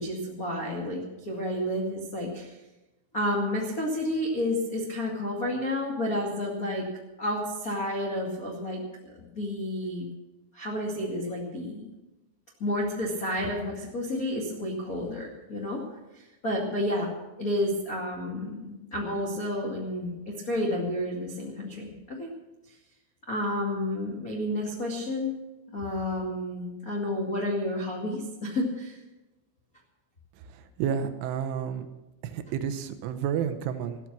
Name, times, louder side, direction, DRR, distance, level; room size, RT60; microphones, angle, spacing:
voice 1, 0.0-2.5 3.1-6.9 7.2-10.1 10.5-11.9 12.6-15.8 16.1-17.1 17.4-22.3 23.3-25.3 25.7-29.0, left 1 dB, 65° left, -3 dB, 0.8 m, -30 dB
voice 2, 30.4-31.9 32.2-34.0, right 8 dB, 80° right, 8 dB, 3.3 m, -31 dB
15.0 x 13.0 x 6.1 m, 1.0 s
omnidirectional pair, 5.9 m